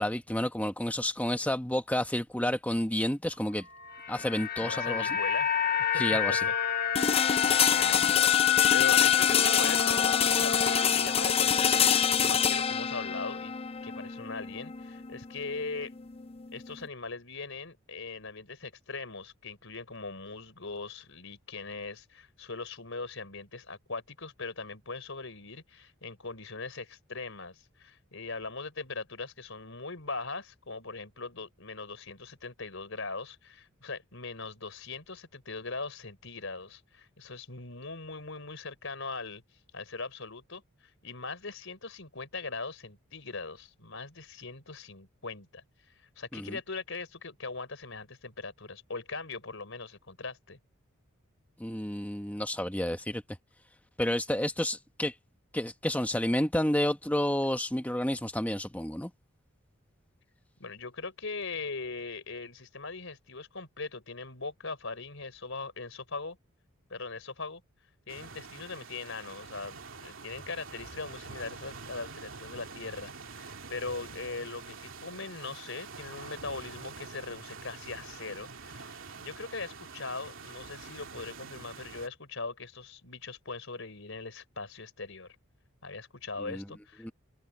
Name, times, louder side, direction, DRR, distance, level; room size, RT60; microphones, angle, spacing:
voice 1, 0.0-3.7 4.1-5.1 6.0-6.4 46.3-46.6 51.6-53.2 54.0-55.1 55.5-59.1 86.4-86.6 87.0-87.1, left 1 dB, 5° left, 0.9 m, -30 dB
sound 1, 3.7-12.0 12.3-12.5, left 10 dB, 45° left, 1.2 m, -29 dB
voice 2, 4.6-5.5 5.8-6.5 7.4-11.9 12.2-13.5 13.8-15.9 16.5-39.4 39.7-40.6 41.0-50.6 60.6-66.4 66.9-67.6 68.1-85.4 85.8-87.1, left 3 dB, 65° left, 4.4 m, -40 dB
sound 2, 6.9-16.8, left 8 dB, 25° left, 0.4 m, -26 dB
sound 3, 68.1-82.1, right 4 dB, 65° right, 2.6 m, -46 dB
head